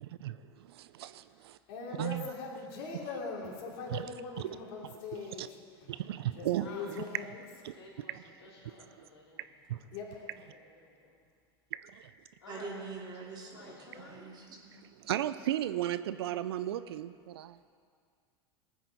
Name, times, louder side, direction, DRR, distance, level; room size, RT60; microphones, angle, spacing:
voice 1, 0.0-1.6 2.0-2.3 3.9-4.1 4.4-4.6 5.4-5.5 5.9-7.0 7.6-8.2 8.6-8.9 9.7-9.8 11.8-12.0 14.7-17.6, right 13 dB, 75° right, 14 dB, 0.5 m, -36 dB
voice 2, 1.7-5.9 6.4-7.4 9.9-10.2, left 4 dB, 60° left, -2 dB, 3.2 m, -41 dB
voice 3, 7.7-9.4 10.2-11.2 12.4-12.7 13.4-14.3, left 2 dB, 85° left, -5 dB, 3.6 m, -53 dB
voice 4, 12.5-14.7, right 4 dB, 35° right, -1 dB, 2.6 m, -44 dB
18.5 x 9.4 x 4.1 m, 2.1 s
hypercardioid pair, 90°, 13 cm